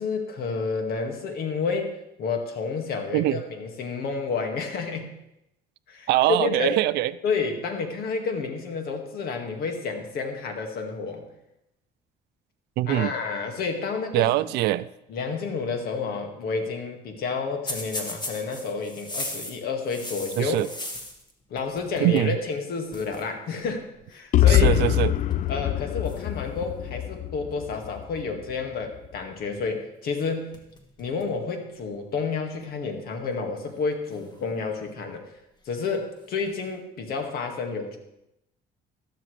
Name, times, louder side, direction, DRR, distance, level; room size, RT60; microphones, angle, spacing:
voice 1, 0.0-1.9 2.2-5.1 5.9-6.8 7.2-11.2 12.9-14.3 15.1-20.6 21.5-23.8 24.1-24.8 25.5-30.5 31.0-35.2 35.7-38.0, left 4 dB, 65° left, 4 dB, 2.0 m, -30 dB
voice 2, 6.1-7.1 12.8-13.1 14.1-14.9 20.4-20.7 22.0-22.4 24.5-25.1, right 15 dB, 80° right, 16 dB, 0.5 m, -23 dB
sound 1, 17.7-21.3 21.6-22.3 22.6-22.7 22.9-23.2 24.1-24.4 25.1-25.5 26.0-27.1 30.1-30.2 30.5-31.4 31.8-31.9 32.8-32.9 34.0-34.9 36.2-36.7, left 1 dB, 25° left, 1.9 m, -38 dB
sound 2, 24.3-28.2, left 12 dB, 50° left, 0.4 m, -23 dB
13.0 x 12.5 x 3.3 m, 0.83 s
cardioid pair, 110°, 17 cm